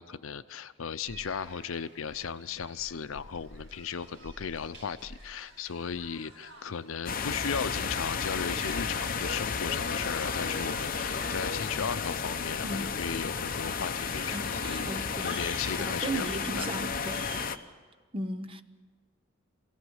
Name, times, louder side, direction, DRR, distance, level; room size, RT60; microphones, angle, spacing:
voice 1, 0.0-16.7, left 6 dB, 85° left, 0.6 m, -36 dB
sound 1, 1.0-17.5, right 1 dB, 55° right, 6.2 m, -49 dB
sound 2, 7.1-17.6, left 5 dB, 45° left, 0.8 m, -33 dB
voice 2, 12.6-12.9 14.3-15.4 15.8-17.3 18.1-18.6, right 1 dB, 25° right, 0.7 m, -36 dB
23.5 x 16.5 x 8.0 m
head